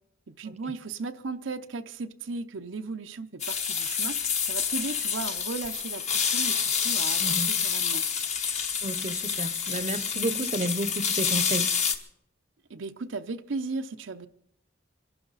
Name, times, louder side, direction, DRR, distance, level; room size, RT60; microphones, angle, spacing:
voice 1, 0.3-4.2 4.4-8.0 12.7-14.3, right 3 dB, 85° right, 0.7 m, -36 dB
sound 1, 3.4-11.9, left 6 dB, 35° left, 1.1 m, -28 dB
voice 2, 7.2-7.5 8.8-11.7, right 1 dB, 35° right, 0.7 m, -31 dB
26.0 x 11.5 x 4.0 m
head